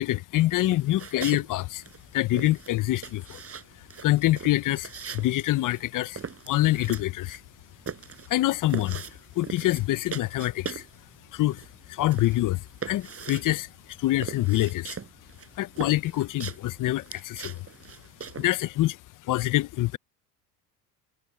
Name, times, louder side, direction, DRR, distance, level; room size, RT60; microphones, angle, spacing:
voice 1, 0.0-1.8 2.1-3.4 4.0-6.2 6.5-7.4 8.3-9.0 9.4-10.8 11.3-11.6 11.9-13.7 14.0-15.0 15.6-17.7 18.4-19.0 19.3-20.0, left 16 dB, 45° left, 0.7 m, -25 dB
sound 1, 0.6-1.5 1.7-11.0 11.3-18.5, right 6 dB, 30° right, 7.6 m, -40 dB
supercardioid pair, 95°, 43 cm